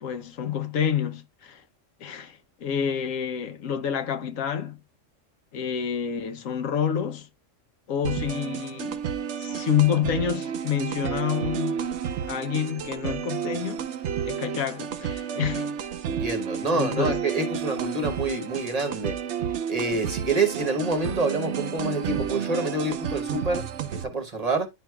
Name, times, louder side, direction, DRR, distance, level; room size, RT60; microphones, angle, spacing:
voice 1, 0.0-1.6 2.0-4.8 5.5-7.3 7.9-9.0 9.4-11.8 12.3-13.9 14.3-15.8 16.7-17.2, left 8 dB, 80° left, 1.2 m, -28 dB
sound 1, 8.0-24.0, right 8 dB, 65° right, 0.9 m, -31 dB
voice 2, 16.1-19.1 19.7-23.6 24.0-24.7, right 3 dB, 35° right, 1.0 m, -27 dB
10.5 x 4.5 x 2.3 m
omnidirectional pair, 1.3 m